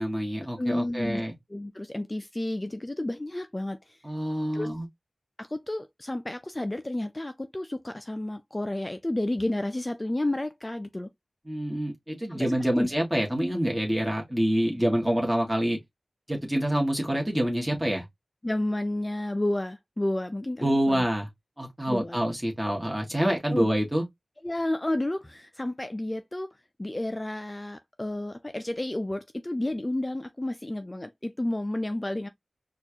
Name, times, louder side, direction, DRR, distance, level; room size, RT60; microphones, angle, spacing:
voice 1, 0.0-1.3 4.0-4.8 11.5-15.8 16.3-18.0 20.6-21.3 21.6-24.0, equal, 15° right, 1.5 m, -26 dB
voice 2, 0.6-1.2 1.5-4.0 4.5-4.7 5.4-11.1 12.3-12.9 18.4-21.0 21.9-22.2 23.5-23.7 24.4-26.5 26.8-32.3, left 1 dB, 25° left, 0.4 m, -31 dB
4.3 x 2.4 x 2.7 m
wide cardioid pair, 60°, 0 cm